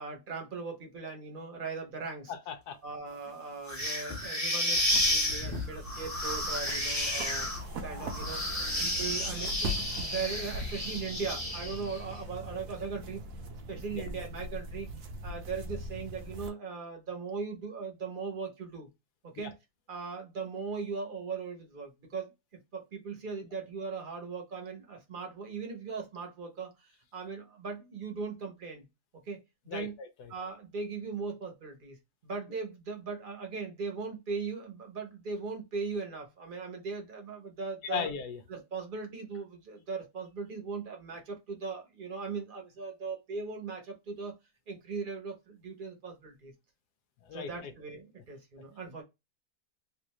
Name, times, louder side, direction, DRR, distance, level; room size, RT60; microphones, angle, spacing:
voice 1, 0.0-2.3 2.8-8.4 8.8-13.2 13.7-14.9 15.2-18.9 19.2-19.5 19.9-28.9 29.2-30.0 30.3-32.0 32.2-38.1 38.5-44.3 44.7-46.5 47.3-49.0, right 4 dB, 40° right, 0.9 m, -39 dB
voice 2, 2.3-2.8 13.9-14.0 29.7-30.3 37.9-38.4 47.2-47.7, left 6 dB, 80° left, 1.2 m, -37 dB
sound 1, 3.7-12.0, left 1 dB, 15° left, 0.8 m, -32 dB
sound 2, 4.7-16.5, equal, 65° right, 1.0 m, -41 dB
3.3 x 2.5 x 3.0 m
omnidirectional pair, 1.7 m